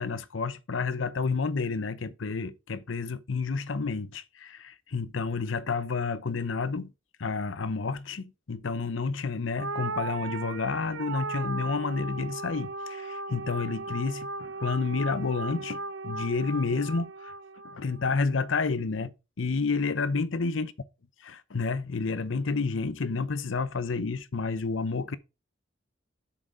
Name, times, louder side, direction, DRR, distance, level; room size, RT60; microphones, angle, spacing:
voice 1, 0.0-6.9 7.2-17.3 17.6-20.7 21.2-25.2, left 4 dB, 80° left, 0.7 m, -30 dB
sound 1, 9.6-18.2, right 3 dB, 80° right, 0.9 m, -37 dB
7.2 x 6.5 x 4.9 m
head